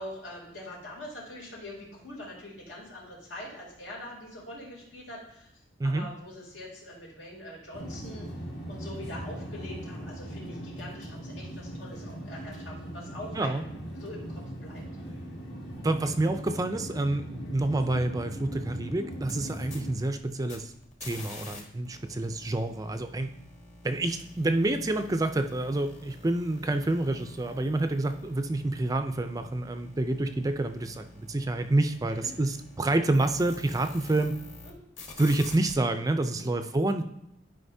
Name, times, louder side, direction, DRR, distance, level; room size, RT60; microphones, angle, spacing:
voice 1, 0.0-5.5 5.8-8.3 8.7-13.6 13.9-14.8 34.6-34.7 36.2-36.5, left 1 dB, 80° left, -4 dB, 3.0 m, -43 dB
sound 1, 7.7-19.9, right 1 dB, 60° left, 2.0 m, -39 dB
voice 2, 15.8-20.7 21.0-23.3 23.8-34.4 35.2-37.0, right 2 dB, 20° right, 8 dB, 0.4 m, -28 dB
sound 2, 19.1-21.6 21.8-34.7 35.0-35.7, left 2 dB, 40° left, 1.5 m, -48 dB
11.5 x 5.1 x 2.7 m, 0.81 s
head